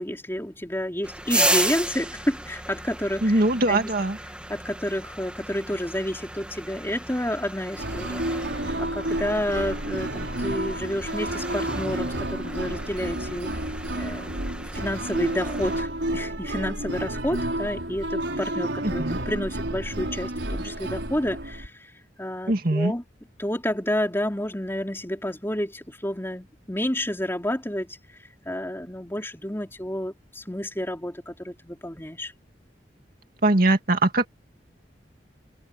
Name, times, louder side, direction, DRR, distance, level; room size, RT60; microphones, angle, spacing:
voice 1, 0.0-3.3 3.7-3.9 4.5-13.5 13.9-14.3 14.7-21.9 22.2-23.0 23.4-27.9 28.5-32.3, left 1 dB, 15° left, 3.8 m, -30 dB
sound 1, 1.0-15.8, right 1 dB, 5° right, 1.6 m, -33 dB
voice 2, 3.2-4.2 18.8-19.2 22.5-22.9 33.4-34.3, right 2 dB, 55° right, 2.3 m, -21 dB
sound 2, 7.8-21.7, right 1 dB, 85° right, 4.5 m, -30 dB
head